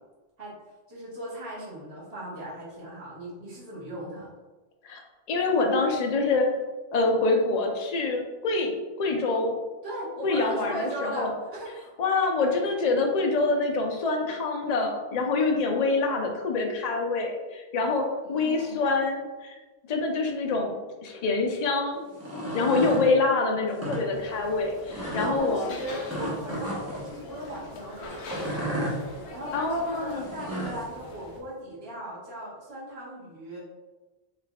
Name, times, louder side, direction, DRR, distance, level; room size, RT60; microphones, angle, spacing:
voice 1, 0.9-4.3 9.8-11.8 18.2-18.8 25.0-28.9 29.3-33.6, right 1 dB, 85° right, -8 dB, 1.6 m, -38 dB
voice 2, 5.3-6.5 6.9-9.6 10.2-11.3 12.0-19.5 19.9-20.8 21.0-22.0 22.5-25.7 29.5-30.3, left 3 dB, 50° left, 2 dB, 0.6 m, -26 dB
sound 1, 22.1-23.0 23.7-24.0 24.9-25.3 26.1-27.0 28.2-29.0 30.2-30.8, right 1 dB, 15° right, 0.8 m, -32 dB
sound 2, 24.1-31.4, left 2 dB, 90° left, 0.9 m, -42 dB
3.6 x 3.3 x 2.3 m, 1.2 s
omnidirectional pair, 1.0 m